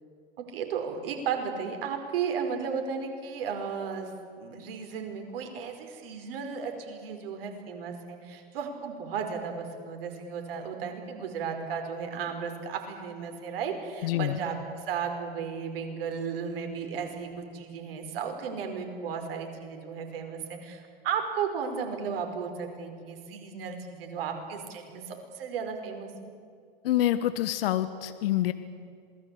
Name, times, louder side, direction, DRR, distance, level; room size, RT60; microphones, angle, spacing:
voice 1, 0.4-4.1 4.4-26.1, right 6 dB, 65° right, 5 dB, 5.3 m, -34 dB
voice 2, 14.0-14.4 26.8-28.5, left 13 dB, 70° left, 12 dB, 1.4 m, -26 dB
27.0 x 20.5 x 8.6 m, 2.2 s
hypercardioid pair, 95°, 30 cm